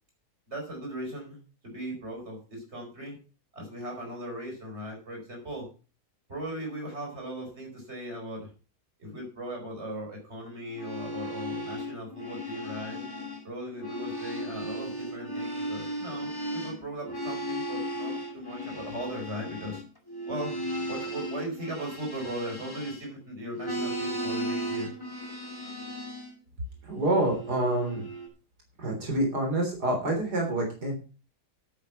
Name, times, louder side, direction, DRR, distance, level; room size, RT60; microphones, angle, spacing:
voice 1, 0.5-3.2 3.5-5.7 6.3-8.5 9.0-13.0 13.4-19.8 20.3-20.6 20.9-24.9, right 1 dB, 40° right, 1 dB, 5.2 m, -38 dB
sound 1, 10.6-13.5 13.7-23.2 23.6-26.3 27.0-28.3, equal, 15° left, 2.5 m, -36 dB
voice 2, 26.8-28.1 28.8-30.9, right 1 dB, 80° right, 1 dB, 4.0 m, -27 dB
10.5 x 8.8 x 5.7 m, 0.35 s
omnidirectional pair, 1.7 m